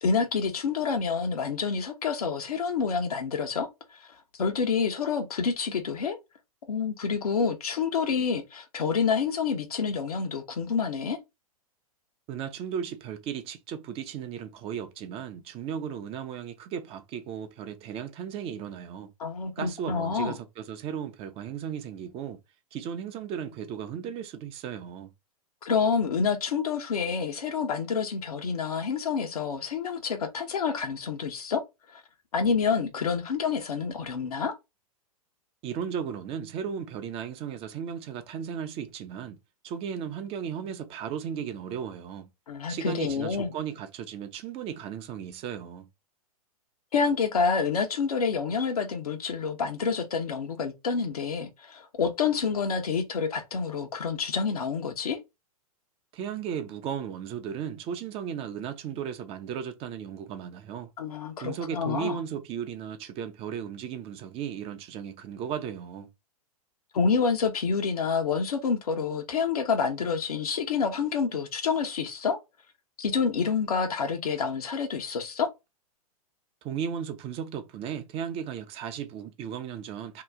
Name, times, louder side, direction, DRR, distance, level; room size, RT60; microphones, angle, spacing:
voice 1, 0.0-3.7 4.0-4.1 4.4-6.2 6.7-11.2 19.2-20.4 25.6-31.6 31.9-32.0 32.3-34.5 42.5-43.5 46.9-55.2 61.0-62.2 66.9-72.4 73.0-75.5, left 5 dB, 75° left, 0.9 m, -28 dB
voice 2, 12.3-19.1 19.6-22.4 22.7-25.1 35.6-39.4 39.6-42.3 42.7-45.9 56.1-60.9 61.4-66.1 76.6-80.2, right 8 dB, 30° right, 0.6 m, -35 dB
2.9 x 2.4 x 3.5 m
hypercardioid pair, 110°, 19 cm